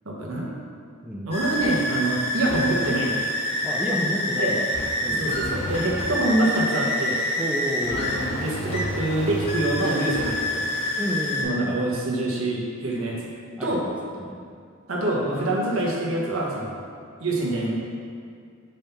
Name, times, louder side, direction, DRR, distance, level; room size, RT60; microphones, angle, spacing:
voice 1, 0.0-0.5 1.3-3.3 4.4-4.6 5.1-7.2 7.9-10.8 11.4-13.2 13.6-13.8 14.9-16.8 17.2-17.8, right 1 dB, 85° right, -3 dB, 1.2 m, -25 dB
voice 2, 1.0-1.4 3.6-4.6 5.0-5.3 7.4-8.1 11.0-11.8 13.6-14.4, equal, 5° right, -3 dB, 0.5 m, -31 dB
sound 1, 1.3-11.4, left 1 dB, 30° left, 1.2 m, -27 dB
5.3 x 3.6 x 5.7 m, 2.3 s
head